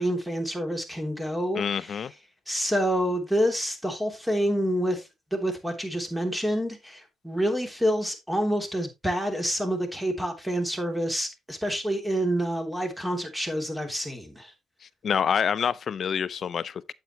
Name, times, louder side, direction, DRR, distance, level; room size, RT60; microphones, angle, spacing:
voice 1, 0.0-2.1 2.5-5.0 5.3-14.5, equal, 5° right, 3.1 m, -28 dB
voice 2, 1.5-2.1 15.0-16.9, left 7 dB, 55° left, 0.6 m, -27 dB
8.9 x 8.1 x 3.1 m
cardioid pair, 90°, 0 cm